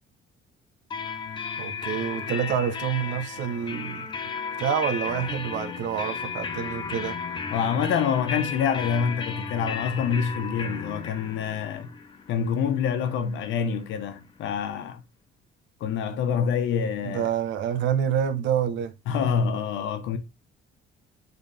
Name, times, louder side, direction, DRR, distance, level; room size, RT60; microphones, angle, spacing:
sound 1, 0.9-14.5, left 6 dB, 25° left, 0.7 m, -35 dB
voice 1, 1.6-4.1 4.6-7.2 17.0-18.9, right 8 dB, 75° right, 1.0 m, -27 dB
voice 2, 7.5-11.9 12.3-15.0 15.8-17.3 19.1-20.2, left 7 dB, 75° left, 1.2 m, -26 dB
7.0 x 4.1 x 3.4 m
cardioid pair, 175°, 20 cm